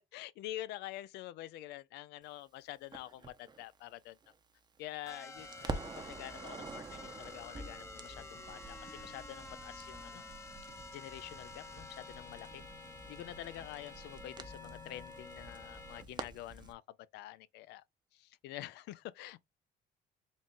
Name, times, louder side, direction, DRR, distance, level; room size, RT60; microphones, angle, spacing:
voice 1, 0.1-4.2 4.8-10.2 10.6-12.6 13.1-16.8 17.1-17.8 18.1-19.4, left 14 dB, 85° left, 0.4 m, -47 dB
Crackle, 2.9-5.1 5.4-16.7, right 3 dB, 25° right, 0.7 m, -48 dB
sound 1, 5.1-16.0, left 3 dB, 15° left, 0.7 m, -50 dB
4.0 x 2.3 x 3.7 m
cardioid pair, 110°, 17 cm